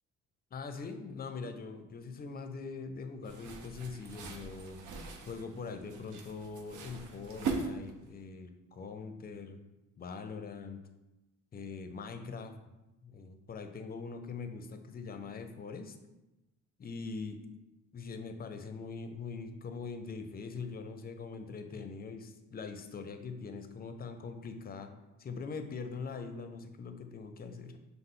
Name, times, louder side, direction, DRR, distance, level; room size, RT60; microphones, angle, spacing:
voice 1, 0.5-4.8 5.3-9.6 10.0-10.8 11.5-12.5 13.0-16.0 16.8-17.4 17.9-24.9 25.2-27.8, left 4 dB, 30° left, 7 dB, 0.5 m, -42 dB
sound 1, 3.2-8.2, right 4 dB, 75° right, 0.6 m, -41 dB
5.5 x 2.0 x 3.6 m, 0.98 s
cardioid pair, 90°, 30 cm